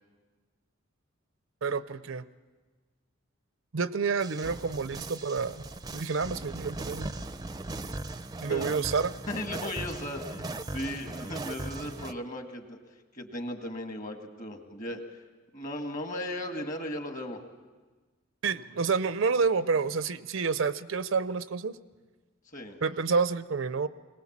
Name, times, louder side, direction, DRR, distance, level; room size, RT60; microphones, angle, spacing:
voice 1, 1.6-2.3 3.7-5.6 5.9-7.1 8.4-9.1 18.4-21.8 22.8-23.9, right 5 dB, 70° right, 15 dB, 0.6 m, -29 dB
sound 1, 4.2-12.1, right 2 dB, 20° right, 0.5 m, -38 dB
voice 2, 8.5-8.8 9.3-12.8 13.1-15.0 15.5-17.4 22.5-22.8, left 1 dB, 40° left, 5 dB, 1.8 m, -36 dB
21.5 x 18.5 x 7.3 m, 1.3 s
head